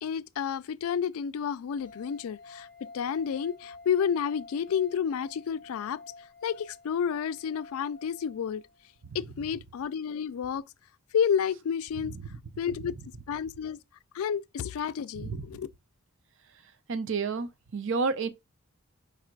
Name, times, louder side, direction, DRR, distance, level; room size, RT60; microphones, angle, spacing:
voice 1, 0.0-6.0 6.4-8.6 9.1-10.6 11.1-12.1 12.6-12.9 13.3-13.8 14.1-15.7, left 7 dB, 75° left, 0.3 m, -30 dB
sound 1, 1.7-8.9, left 3 dB, 40° left, 0.7 m, -50 dB
voice 2, 16.9-18.3, right 4 dB, 60° right, 0.6 m, -31 dB
4.8 x 2.4 x 4.5 m
head